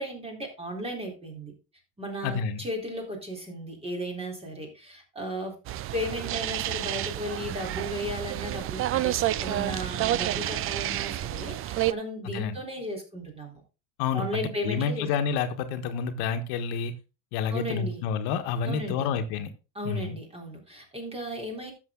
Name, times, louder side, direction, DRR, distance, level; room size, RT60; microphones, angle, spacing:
voice 1, 0.0-1.5 2.0-5.6 5.9-13.6 14.1-15.1 17.5-18.0 18.6-19.1 19.8-21.7, equal, 15° right, 1 dB, 3.8 m, -35 dB
voice 2, 2.2-2.6 12.2-12.6 14.0-16.9 17.3-19.5 19.8-20.2, left 6 dB, 75° left, 7 dB, 1.5 m, -29 dB
sound 1, 5.7-11.9, right 14 dB, 35° right, 0.5 m, -29 dB
11.5 x 7.2 x 3.8 m, 0.31 s
cardioid pair, 130°, 38 cm